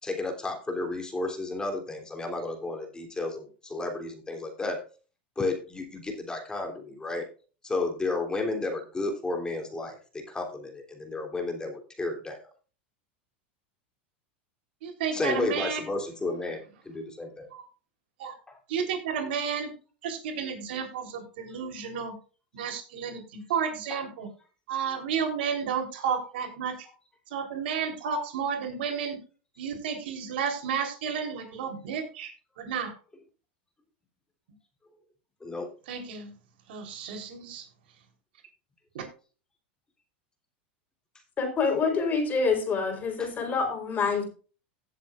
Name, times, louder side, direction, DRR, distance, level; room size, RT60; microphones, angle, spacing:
voice 1, 0.0-4.8 5.4-7.3 7.6-12.4 15.1-17.5 18.5-18.6 23.9-24.0 35.4-35.7, left 2 dB, 15° left, 2 dB, 3.1 m, -32 dB
voice 2, 14.8-15.8 17.5-17.6 18.2-18.3 18.7-19.7 20.0-22.1 22.5-24.3 24.7-26.8 27.3-29.2 29.6-32.9 35.9-36.3 36.7-37.6 38.9-39.1, right 7 dB, 75° right, 4 dB, 3.6 m, -32 dB
voice 3, 41.4-44.3, left 4 dB, 30° left, 3 dB, 4.0 m, -26 dB
17.0 x 7.5 x 2.5 m, 0.36 s
hypercardioid pair, 105°, 6 cm